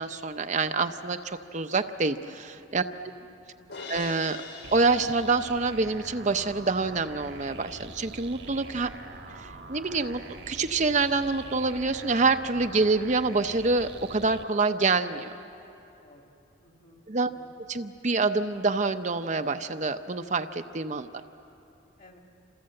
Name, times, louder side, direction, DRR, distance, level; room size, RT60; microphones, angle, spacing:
voice 1, 0.0-2.8 3.9-4.4 4.7-8.9 9.3-15.3 17.1-17.3 17.7-21.2, right 3 dB, 40° right, 8 dB, 0.7 m, -26 dB
voice 2, 2.9-3.3 3.6-3.8 16.0-16.2 16.6-17.5 22.0-22.2, left 2 dB, 45° left, 3 dB, 2.5 m, -56 dB
Crash cymbal, 3.7-6.0, left 5 dB, 75° left, 4.8 m, -42 dB
sound 1, 4.6-14.4, right 3 dB, 65° right, 1.4 m, -44 dB
28.0 x 27.0 x 7.7 m, 2.9 s
head